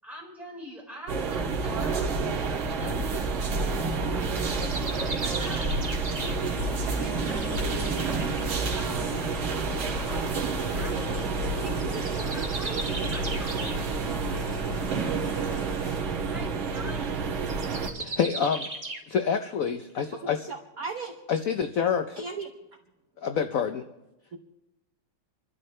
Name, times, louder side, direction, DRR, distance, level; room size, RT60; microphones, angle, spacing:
voice 1, 0.0-4.5 5.0-7.8 8.7-14.5 16.3-17.6, right 1 dB, ahead, -5 dB, 4.7 m, -44 dB
sound 1, 1.1-17.9, right 4 dB, 85° right, 2.3 m, -29 dB
sound 2, 1.6-2.0 3.6-8.9 11.0-11.4 11.7-13.9 14.3-14.4 14.8-14.9 16.5-19.0, right 2 dB, 25° right, 1.0 m, -38 dB
sound 3, 6.4-16.0, left 2 dB, 45° left, 3.1 m, -43 dB
voice 2, 18.0-18.7 19.1-20.4 21.3-22.2 23.2-23.8, left 7 dB, 65° left, 8 dB, 0.9 m, -27 dB
voice 3, 20.2-21.1 22.2-22.5 24.3-24.4, right 4 dB, 55° right, 3 dB, 1.2 m, -36 dB
27.0 x 12.5 x 3.3 m, 0.93 s
omnidirectional pair, 2.2 m